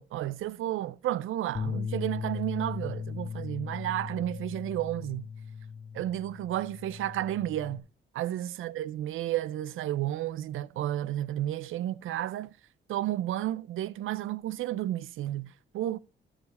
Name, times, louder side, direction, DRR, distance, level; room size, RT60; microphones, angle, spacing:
voice 1, 0.0-5.3 5.9-7.9 8.1-12.5 12.9-16.0, right 13 dB, 85° right, 0.4 m, -32 dB
Bass guitar, 1.5-7.8, left 6 dB, 30° left, 0.7 m, -38 dB
13.0 x 4.9 x 4.1 m
cardioid pair, 85°, 20 cm